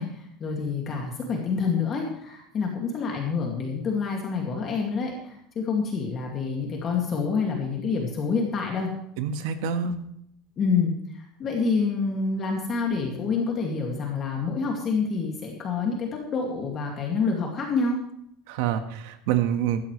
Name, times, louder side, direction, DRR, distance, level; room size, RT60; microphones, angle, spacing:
voice 1, 0.0-8.9 10.6-18.0, left 4 dB, 25° left, 0 dB, 2.4 m, -27 dB
voice 2, 9.2-10.0 18.5-19.8, right 8 dB, 70° right, 7 dB, 1.6 m, -26 dB
17.0 x 14.0 x 3.3 m, 0.71 s
cardioid pair, 175°, 0 cm